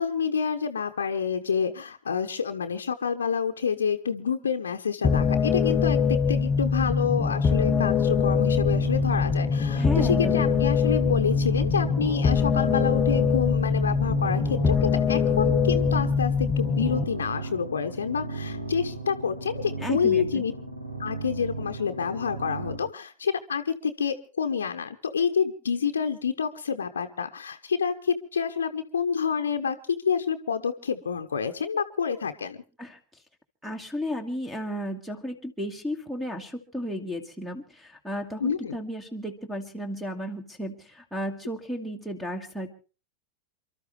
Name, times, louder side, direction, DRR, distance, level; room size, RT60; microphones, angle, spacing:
voice 1, 0.0-20.5 21.0-29.8 30.0-32.6 38.4-38.8, left 6 dB, 70° left, 7 dB, 0.9 m, -28 dB
sound 1, 5.0-17.0, left 6 dB, 25° left, 0.8 m, -23 dB
sound 2, 7.7-22.8, right 3 dB, 80° right, 3.3 m, -36 dB
voice 2, 9.8-10.5 19.8-20.4 32.8-33.0 33.6-42.7, equal, 5° right, 9 dB, 1.8 m, -34 dB
28.5 x 12.5 x 3.2 m, 0.34 s
figure-of-eight pair, 90°, 0 cm